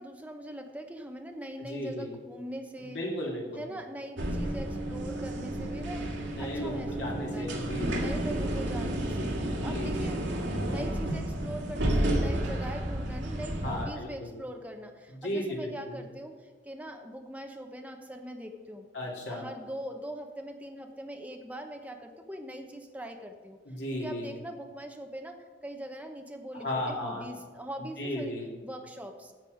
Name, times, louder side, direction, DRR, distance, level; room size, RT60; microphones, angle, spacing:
voice 1, 0.0-3.0 3.6-7.5 7.9-10.2 10.6-18.9 19.3-23.6 23.9-28.3 28.6-29.3, right 1 dB, 10° right, 4 dB, 1.0 m, -42 dB
voice 2, 1.6-2.1 2.8-3.6 6.3-8.1 9.6-10.1 13.6-14.4 15.1-16.0 18.9-19.5 23.6-24.4 26.6-27.3 27.8-28.5, left 1 dB, 70° left, -2 dB, 2.6 m, -35 dB
sound 1, 4.2-13.9, right 1 dB, 80° right, 1.9 m, -31 dB
10.5 x 7.6 x 5.0 m, 1.5 s
head